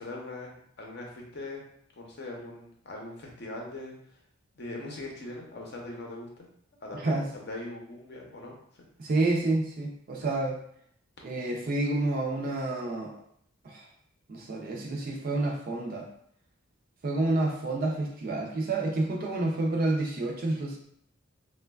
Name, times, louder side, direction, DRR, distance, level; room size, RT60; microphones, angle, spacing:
voice 1, 0.0-1.6 1.9-4.2 4.5-6.5 6.8-8.9, left 2 dB, 50° left, -1 dB, 0.6 m, -41 dB
voice 2, 6.9-7.3 9.0-10.6 11.2-13.2 13.6-13.9 14.3-16.1 17.0-20.8, right 2 dB, 45° right, 0 dB, 0.4 m, -29 dB
3.1 x 2.2 x 2.2 m, 0.66 s
head